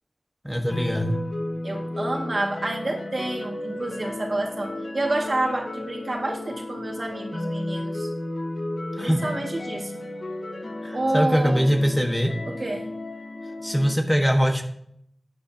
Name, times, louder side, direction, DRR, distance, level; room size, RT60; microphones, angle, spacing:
voice 1, 0.4-1.2 9.0-9.2 10.8-12.4 13.6-14.6, equal, 5° left, 3 dB, 1.3 m, -22 dB
sound 1, 0.7-13.9, left 1 dB, 85° left, 1.1 m, -33 dB
voice 2, 1.6-8.1 9.0-9.9 10.9-11.6 12.5-12.9, right 2 dB, 65° right, 1 dB, 1.9 m, -28 dB
12.5 x 8.7 x 2.8 m, 0.69 s
wide cardioid pair, 45°, 0 cm